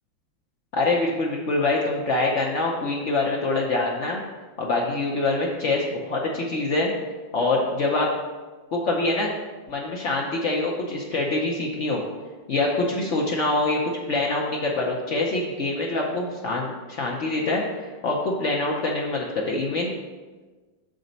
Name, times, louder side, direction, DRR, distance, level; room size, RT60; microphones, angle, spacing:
voice 1, 0.7-4.2 4.6-6.9 7.3-8.1 8.7-9.3 9.7-12.0 12.5-13.8 14.1-19.9, left 2 dB, 75° left, -2 dB, 0.6 m, -25 dB
6.4 x 5.1 x 3.9 m, 1.3 s
omnidirectional pair, 2.1 m